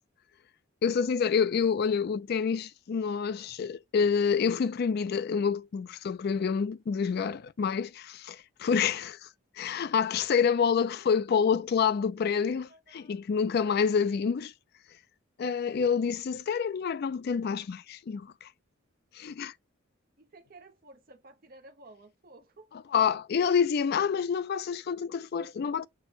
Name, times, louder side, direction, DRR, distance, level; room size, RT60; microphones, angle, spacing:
voice 1, 0.8-9.3 9.6-14.5 15.4-18.5 19.1-19.5 22.9-25.9, left 6 dB, 50° left, 0.3 m, -28 dB
voice 2, 12.7-13.2 20.2-22.7, right 2 dB, 45° right, 0.7 m, -54 dB
6.1 x 2.1 x 3.8 m
head